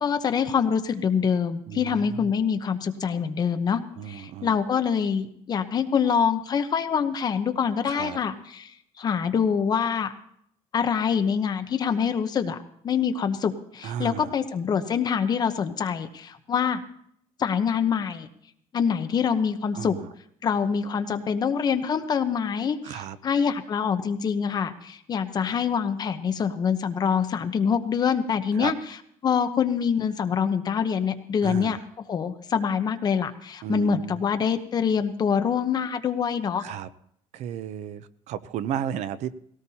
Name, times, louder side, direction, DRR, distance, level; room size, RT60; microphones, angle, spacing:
voice 1, 0.0-3.8 4.1-8.7 9.0-10.1 10.7-12.6 12.8-16.8 17.4-18.3 18.7-20.0 20.4-28.7 29.2-31.8 32.1-36.6, left 7 dB, 30° left, 8 dB, 0.9 m, -25 dB
voice 2, 1.7-2.3 4.0-4.6 7.8-8.2 13.8-14.4 19.7-20.1 22.8-23.2 28.5-28.7 31.4-31.8 33.6-34.2 36.6-36.9 37.3-39.3, right 9 dB, 65° right, 15 dB, 0.6 m, -34 dB
19.0 x 17.5 x 2.8 m, 0.68 s
cardioid pair, 170°, 13 cm